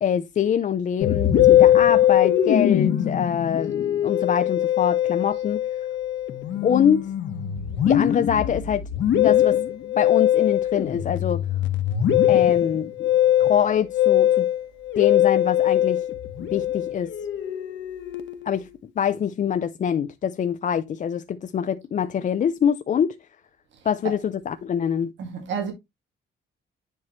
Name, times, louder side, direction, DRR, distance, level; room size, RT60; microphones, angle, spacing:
voice 1, 0.0-5.6 6.6-7.1 7.9-8.9 9.2-9.6 10.0-11.4 12.3-13.1 13.4-14.5 15.0-16.1 16.5-17.1 18.4-18.7 19.0-23.2 23.8-25.1, left 8 dB, 40° left, 0.5 m, -24 dB
Musical instrument, 1.0-18.6, left 11 dB, 70° left, 1.1 m, -21 dB
voice 2, 25.2-25.7, right 6 dB, 70° right, 2.1 m, -30 dB
9.9 x 4.7 x 3.0 m
cardioid pair, 160°, 20 cm